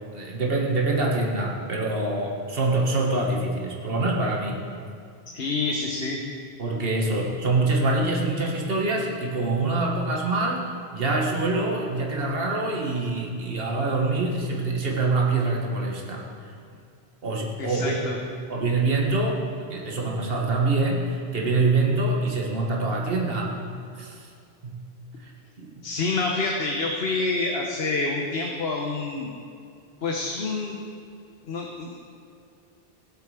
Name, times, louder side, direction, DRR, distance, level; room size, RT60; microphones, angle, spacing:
voice 1, 0.1-4.6 6.6-10.6 10.9-16.5 17.2-18.0 18.5-23.6 23.9-24.3 24.6-24.8 25.2-25.3 25.6-25.8, right 2 dB, 65° right, -1 dB, 1.8 m, -25 dB
voice 2, 5.3-6.2 17.6-18.2 25.8-29.3 30.0-30.8 31.5-32.0, left 3 dB, 75° left, 0 dB, 1.3 m, -27 dB
19.5 x 8.3 x 5.0 m, 2.4 s
omnidirectional pair, 1.0 m